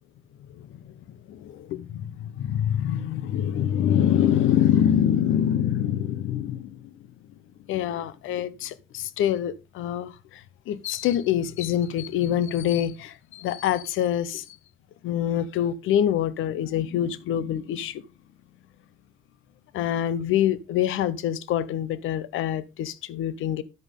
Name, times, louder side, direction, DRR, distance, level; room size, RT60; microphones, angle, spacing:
voice 1, 1.3-6.9 7.7-10.1 10.7-14.4 15.0-18.0 19.7-23.6, left 10 dB, 85° left, 0.9 m, -25 dB
9.8 x 8.2 x 3.7 m
cardioid pair, 90°, 20 cm